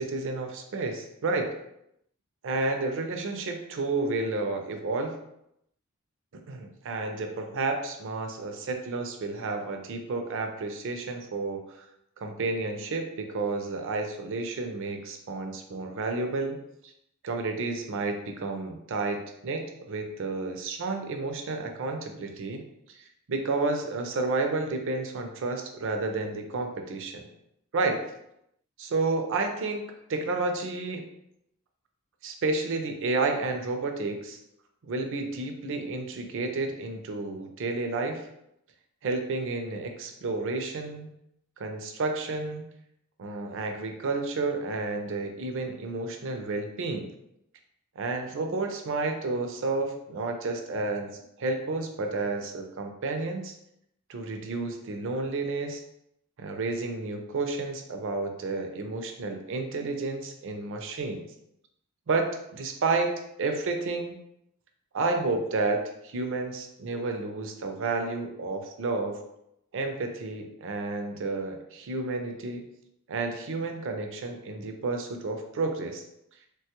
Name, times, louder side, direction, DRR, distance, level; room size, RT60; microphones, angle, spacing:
voice 1, 0.0-1.5 2.4-5.2 6.5-11.8 12.2-16.6 17.2-22.6 23.0-27.3 27.7-28.0 28.8-29.8 30.1-31.0 32.2-34.4 34.9-38.3 39.0-41.1 41.6-42.6 43.2-47.1 48.0-51.1 51.4-53.5 54.1-55.8 56.4-61.2 62.1-62.3 62.5-63.1 63.4-64.1 64.9-69.2 69.7-72.6 73.1-76.0, right 3 dB, 60° right, 4 dB, 0.5 m, -31 dB
3.2 x 2.2 x 2.9 m, 0.79 s
head